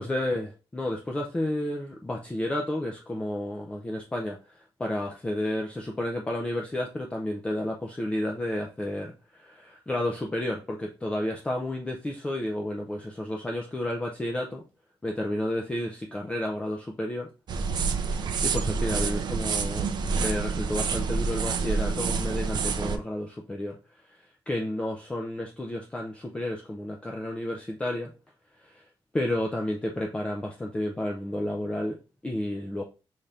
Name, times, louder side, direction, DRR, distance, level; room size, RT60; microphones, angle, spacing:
voice 1, 0.0-14.6 15.0-17.3 18.4-23.8 24.1-28.1 28.6-28.8 29.1-32.8, left 1 dB, 10° left, 0 dB, 0.4 m, -31 dB
sound 1, 17.5-23.0, right 5 dB, 45° right, 0.4 m, -28 dB
5.6 x 2.5 x 3.3 m, 0.33 s
wide cardioid pair, 165°, 10 cm